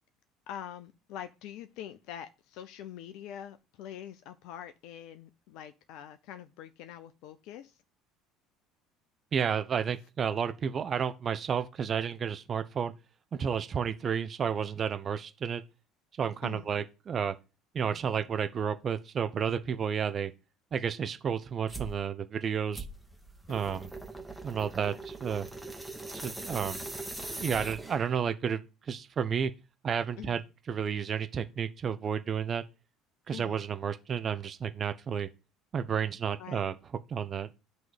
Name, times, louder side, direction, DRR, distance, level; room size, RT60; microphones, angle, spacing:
voice 1, 0.5-7.8 16.4-16.7 23.5-23.9 30.2-30.4 33.3-33.6 36.4-36.7, left 10 dB, 55° left, 0.4 m, -44 dB
voice 2, 9.3-12.9 13.3-15.6 16.2-17.4 17.7-20.3 20.7-22.9 23.5-23.9 24.4-25.5 26.1-26.8 27.3-28.6 28.9-29.5 29.8-30.4 30.7-32.6 33.3-35.3 35.7-36.7 37.1-37.5, right 7 dB, 35° right, 0.7 m, -31 dB
sound 1, 21.7-22.0 22.7-28.2, right 2 dB, ahead, 1.2 m, -41 dB
9.3 x 3.1 x 5.1 m
figure-of-eight pair, 60°, 0 cm